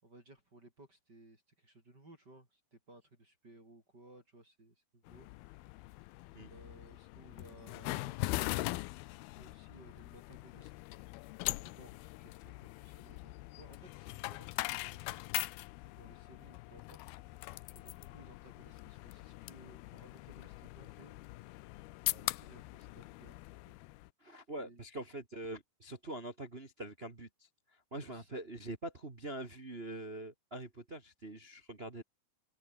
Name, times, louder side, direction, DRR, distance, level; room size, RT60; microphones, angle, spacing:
voice 1, 0.0-5.9 6.5-8.3 9.3-10.9 11.5-17.2 17.7-21.1 22.1-23.4 24.5-24.8 28.0-28.4, right 1 dB, 25° right, 6.2 m, -59 dB
sound 1, 5.1-24.1, left 20 dB, 80° left, 2.4 m, -42 dB
voice 2, 24.2-27.3 27.9-32.0, right 1 dB, 40° right, 0.8 m, -44 dB
open air
omnidirectional pair, 4.6 m